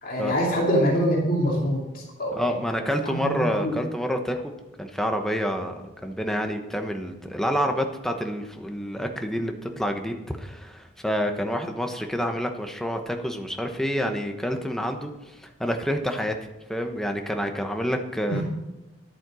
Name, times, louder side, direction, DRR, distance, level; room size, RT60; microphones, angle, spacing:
voice 1, 0.0-2.4 3.1-3.3 3.6-3.7 18.3-18.4, equal, 45° left, -3 dB, 2.8 m, -24 dB
voice 2, 2.3-4.5 4.8-15.1 15.4-16.3 16.7-18.4, equal, ahead, 4 dB, 1.0 m, -28 dB
11.0 x 8.7 x 6.3 m, 1.0 s
head